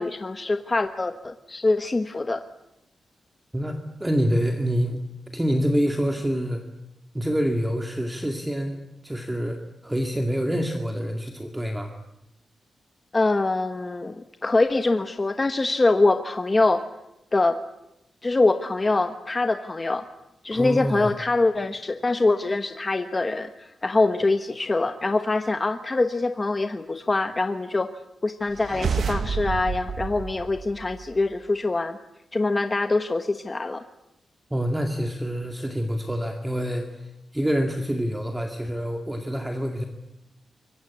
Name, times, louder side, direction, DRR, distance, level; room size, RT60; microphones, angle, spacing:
voice 1, 0.0-2.4 13.1-16.8 17.3-17.6 18.2-20.0 20.4-27.9 28.2-32.0 32.3-33.8, left 2 dB, 20° left, 8 dB, 1.1 m, -24 dB
voice 2, 3.5-5.0 5.3-6.6 7.1-11.9 20.5-21.1 34.5-39.8, equal, 10° right, 4 dB, 2.1 m, -26 dB
sound 1, 28.5-31.3, right 6 dB, 55° right, 1.1 m, -30 dB
25.5 x 23.5 x 8.5 m, 0.88 s
wide cardioid pair, 160°, 0 cm